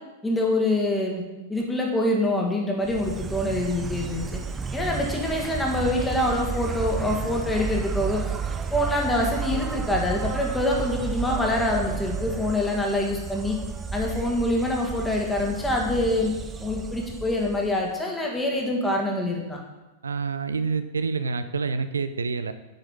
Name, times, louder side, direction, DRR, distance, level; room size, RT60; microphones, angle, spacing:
voice 1, 0.2-1.2 1.5-4.4 4.7-8.2 8.7-13.6 13.9-16.3 16.6-19.6, left 1 dB, 10° left, 0 dB, 1.6 m, -25 dB
Insect, 2.8-17.9, right 6 dB, 20° right, 0.5 m, -32 dB
voice 2, 20.0-22.5, right 4 dB, 75° right, 11 dB, 0.4 m, -27 dB
7.5 x 4.9 x 4.7 m, 1.1 s
figure-of-eight pair, 95°, 0 cm